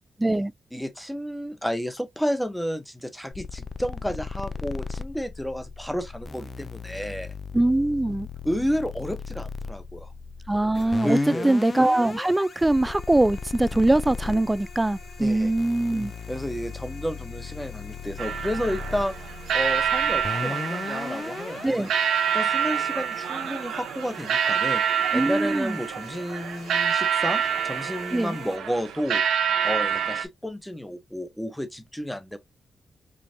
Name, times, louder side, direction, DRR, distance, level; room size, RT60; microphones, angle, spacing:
voice 1, 0.2-0.5 7.5-8.3 10.5-16.1 21.6-21.9 25.1-25.8 28.1-28.4, right 2 dB, 20° right, 0.3 m, -22 dB
voice 2, 0.7-7.3 8.4-10.1 11.0-11.6 15.2-15.5 16.3-19.1 19.5-21.9 22.3-24.8 25.1-29.2 29.6-32.4, equal, 5° left, 1.1 m, -31 dB
sound 1, 3.3-21.9, left 4 dB, 45° left, 0.5 m, -37 dB
sound 2, 10.7-28.6, left 3 dB, 80° left, 2.6 m, -48 dB
sound 3, 18.2-30.2, right 8 dB, 85° right, 0.8 m, -27 dB
5.2 x 2.5 x 2.7 m
supercardioid pair, 50°, 0 cm